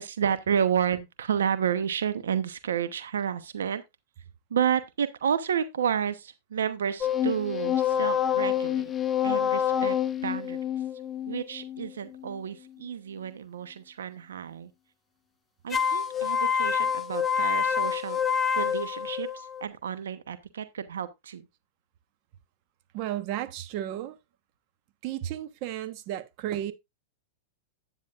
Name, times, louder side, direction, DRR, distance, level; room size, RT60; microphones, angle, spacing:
voice 1, 0.0-3.8 4.5-8.9 9.2-10.0 10.2-10.6 11.3-14.7 15.6-18.2 18.5-21.4, right 8 dB, 85° right, 1.0 m, -30 dB
sound 1, 7.0-12.4 15.7-19.6, left 8 dB, 20° left, 0.7 m, -27 dB
voice 2, 22.9-24.2 25.0-26.7, right 12 dB, 50° right, 1.2 m, -33 dB
10.0 x 9.1 x 2.5 m
hypercardioid pair, 115°, 0 cm